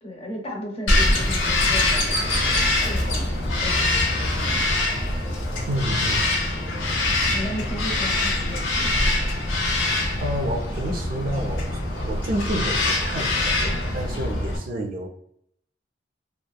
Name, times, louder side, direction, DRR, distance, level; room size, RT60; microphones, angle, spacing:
voice 1, 0.0-4.7 7.3-9.0, left 1 dB, 35° left, 0 dB, 0.7 m, -35 dB
Bird vocalization bird call bird song, 0.9-14.6, left 2 dB, 90° left, 0.7 m, -23 dB
voice 2, 5.7-6.3 10.2-15.1, right 1 dB, 50° right, 3 dB, 0.4 m, -29 dB
2.8 x 2.4 x 2.2 m, 0.73 s
head